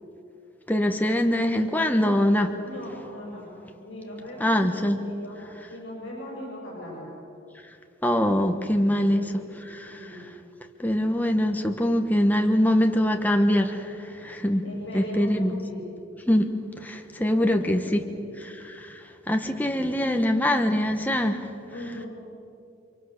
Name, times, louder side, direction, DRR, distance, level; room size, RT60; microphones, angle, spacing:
voice 1, 0.7-2.5 4.4-5.0 8.0-9.2 9.7-9.9 10.8-14.6 14.9-15.5 16.3-16.5 16.8-18.0 18.8-21.5, left 1 dB, 10° left, 4 dB, 1.2 m, -23 dB
voice 2, 2.5-3.5 3.8-5.4 5.7-7.1 8.8-10.3 14.6-15.9 17.2-18.3 19.7-19.9 21.7-22.1, equal, 65° left, -4 dB, 7.6 m, -40 dB
30.0 x 24.5 x 6.8 m, 2.6 s
head